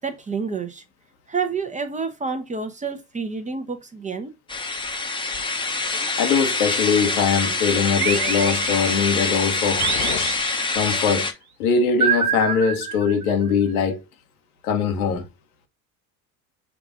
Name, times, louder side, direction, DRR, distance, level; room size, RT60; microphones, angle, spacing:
voice 1, 0.0-0.8 1.3-4.3, right 5 dB, 15° right, 0.8 m, -29 dB
sound 1, 4.5-11.3, left 3 dB, 10° left, 0.9 m, -25 dB
voice 2, 6.2-9.9 10.7-11.3 11.6-14.0 14.6-15.3, left 6 dB, 80° left, 1.1 m, -21 dB
sound 2, 8.0-9.1 9.8-10.9 12.0-13.5, right 7 dB, 90° right, 0.7 m, -26 dB
sound 3, 9.6-10.6, left 10 dB, 55° left, 0.8 m, -32 dB
5.9 x 2.5 x 3.7 m
hypercardioid pair, 70°, 42 cm